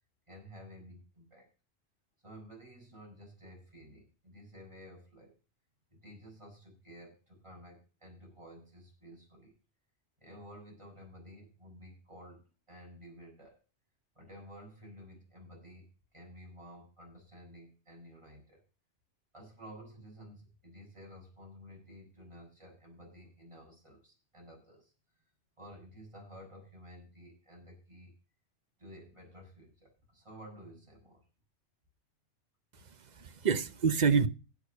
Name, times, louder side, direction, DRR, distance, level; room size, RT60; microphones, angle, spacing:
voice 1, 0.3-1.5 2.2-5.3 5.9-9.5 10.2-12.4 12.7-13.6 14.2-18.6 19.3-24.9 25.6-28.1 28.8-31.2, equal, 25° right, 7.0 m, -52 dB
voice 2, 32.7-34.3, right 6 dB, 40° right, 0.8 m, -28 dB
11.5 x 8.5 x 6.6 m
omnidirectional pair, 1.2 m